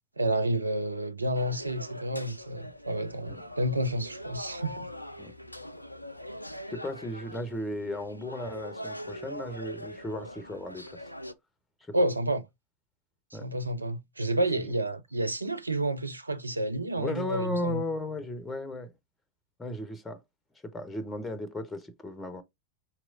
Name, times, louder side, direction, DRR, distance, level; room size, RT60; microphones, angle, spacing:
voice 1, 0.2-4.9 11.9-12.4 13.3-17.8, right 1 dB, 80° right, 0.5 m, -30 dB
sound 1, 1.4-11.3, equal, 90° left, 0.3 m, -42 dB
voice 2, 6.7-11.0 13.3-13.5 17.0-18.9 19.6-20.2 20.6-22.4, left 1 dB, 10° left, 0.7 m, -35 dB
4.2 x 3.0 x 2.5 m
figure-of-eight pair, 90°, 0 cm